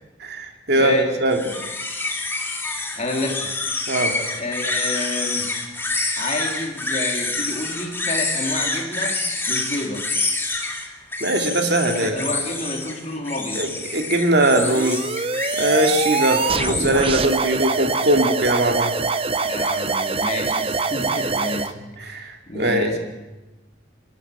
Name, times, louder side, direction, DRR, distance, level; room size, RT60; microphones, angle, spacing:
voice 1, 0.2-1.4 3.9-4.1 11.2-12.2 13.6-15.0 15.6-18.9 22.0-22.9, right 1 dB, 55° right, 4 dB, 2.5 m, -20 dB
voice 2, 0.7-1.1 3.0-3.9 4.4-5.5 6.2-9.2 9.5-10.1 11.9-13.7 19.4-23.0, left 2 dB, 35° left, 2 dB, 3.5 m, -29 dB
sound 1, 1.3-17.2, left 3 dB, 10° left, 2.2 m, -27 dB
sound 2, 14.6-21.7, right 4 dB, 30° right, 0.8 m, -24 dB
28.5 x 12.0 x 9.6 m, 1.1 s
head